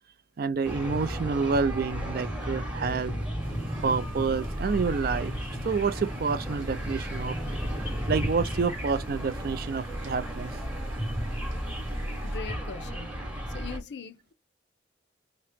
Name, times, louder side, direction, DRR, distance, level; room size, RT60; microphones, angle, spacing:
voice 1, 0.4-3.1 3.8-5.3 5.6-7.4 8.1-10.5, right 5 dB, 50° right, 0.4 m, -28 dB
sound 1, 0.6-13.8, equal, 5° right, 0.9 m, -33 dB
sound 2, 3.4-12.4, right 3 dB, 85° right, 0.6 m, -49 dB
voice 2, 12.2-13.2 13.5-14.3, left 6 dB, 60° left, 0.5 m, -41 dB
2.9 x 2.8 x 3.4 m
head